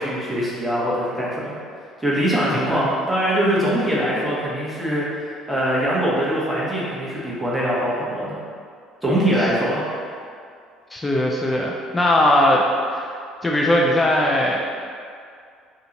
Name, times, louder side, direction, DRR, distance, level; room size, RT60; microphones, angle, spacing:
voice 1, 0.0-1.6 2.0-5.0 5.5-8.4 9.0-9.8, equal, 10° right, -7 dB, 1.2 m, -22 dB
voice 2, 2.5-2.9 10.9-12.6 12.9-13.1 13.4-14.8, left 1 dB, 15° left, -2 dB, 0.4 m, -19 dB
2.9 x 2.7 x 3.8 m, 2.3 s
hypercardioid pair, 70°, 0 cm